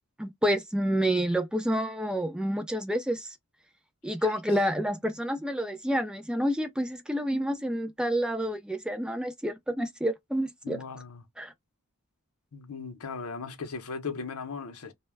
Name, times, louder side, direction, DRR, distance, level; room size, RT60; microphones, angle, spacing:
voice 1, 0.2-3.3 4.0-10.8 11.4-11.5, equal, 5° right, 0.3 m, -29 dB
voice 2, 4.2-4.6 10.6-11.2 12.5-14.9, left 5 dB, 80° left, 0.6 m, -38 dB
2.2 x 2.0 x 3.2 m
head